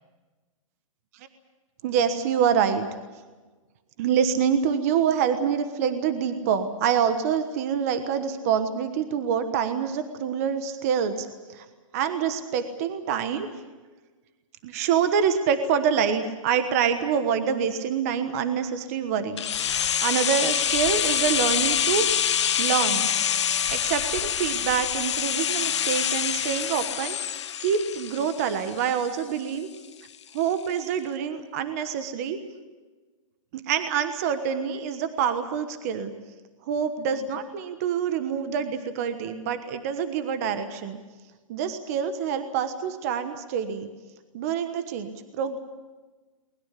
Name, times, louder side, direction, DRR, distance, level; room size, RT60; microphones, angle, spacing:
voice 1, 1.8-2.9 4.0-11.6 11.9-13.5 14.6-22.2 22.6-23.1 23.7-27.2 27.6-29.7 30.3-32.4 33.7-36.1 36.7-41.0 41.5-43.9 44.3-45.6, right 7 dB, 25° right, 9 dB, 1.3 m, -26 dB
sound 1, 19.4-29.2 29.5-29.6, left 9 dB, 55° left, 1.1 m, -26 dB
22.0 x 21.0 x 8.3 m, 1.3 s
hypercardioid pair, 170°, 17 cm